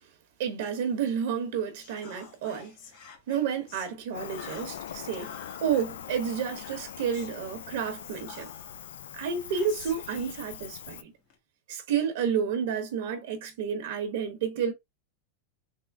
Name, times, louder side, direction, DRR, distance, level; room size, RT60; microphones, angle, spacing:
voice 1, 0.4-2.8 3.3-5.3 5.6-8.5 9.1-11.1 11.7-14.7, right 7 dB, 65° right, 1.0 m, -30 dB
Whispering, 1.8-3.9 4.3-5.9 6.6-7.4 8.0-8.9 9.5-11.4, left 6 dB, 50° left, 1.2 m, -49 dB
Cricket, 4.1-11.0, left 9 dB, 90° left, 0.4 m, -42 dB
3.7 x 2.1 x 3.4 m
supercardioid pair, 150°, 0 cm